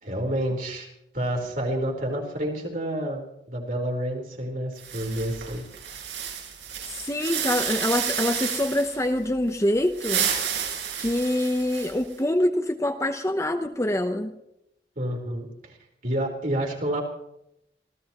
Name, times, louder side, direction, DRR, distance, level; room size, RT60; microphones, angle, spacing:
voice 1, 0.0-0.9 1.1-5.6 15.0-15.8 16.0-17.0, right 1 dB, 50° right, 0 dB, 4.1 m, -29 dB
sound 1, 4.8-9.0 9.8-12.1, right 8 dB, 70° right, 5.8 m, -30 dB
voice 2, 6.9-10.3 11.0-14.3, left 1 dB, 15° left, 6 dB, 0.9 m, -25 dB
26.5 x 16.5 x 3.1 m, 0.81 s
head